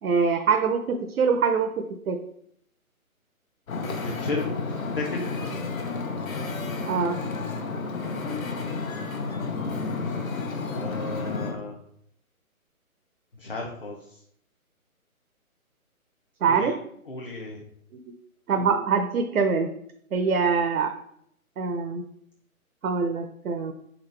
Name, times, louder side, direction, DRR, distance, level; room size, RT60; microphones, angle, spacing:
voice 1, 0.0-2.2 6.9-7.2 16.4-16.7 18.5-19.7 20.1-21.0 21.6-22.0 22.8-23.7, right 5 dB, 70° right, 6 dB, 0.6 m, -24 dB
Wind / Ocean, 3.7-11.6, left 4 dB, 65° left, 0.9 m, -31 dB
voice 2, 4.0-4.6 4.9-5.2 10.7-11.7 13.4-14.2 16.4-16.7 17.1-17.6, left 3 dB, 40° left, -1 dB, 0.5 m, -33 dB
4.0 x 3.9 x 3.2 m, 0.70 s
hypercardioid pair, 170°, 44 cm